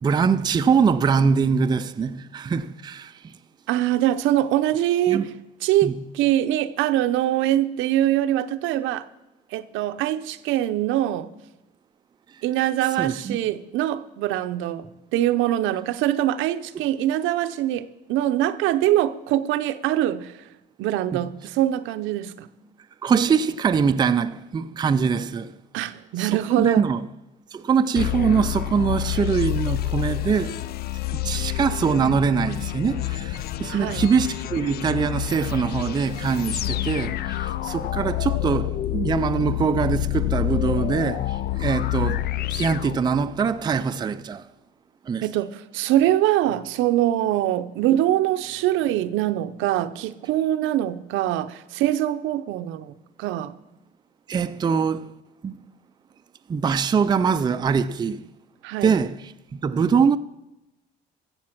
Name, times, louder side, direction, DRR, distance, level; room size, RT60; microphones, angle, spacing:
voice 1, 0.0-3.4 5.1-5.3 5.8-6.0 13.0-13.4 21.1-21.2 23.0-25.5 26.2-27.0 27.5-30.6 31.1-44.5 45.1-45.3 54.3-55.1 55.4-55.6 56.5-58.3 58.8-59.2 59.5-60.2, right 6 dB, 20° right, 0.4 m, -23 dB
voice 2, 3.7-5.3 5.6-9.1 9.5-11.3 12.4-14.9 15.1-20.4 20.8-22.5 25.7-26.9 33.7-34.0 45.2-53.5 58.6-59.0, right 13 dB, 80° right, 0.7 m, -23 dB
sound 1, 28.0-43.6, left 14 dB, 55° left, 0.4 m, -28 dB
14.5 x 7.2 x 5.9 m
cardioid pair, 120°, 20 cm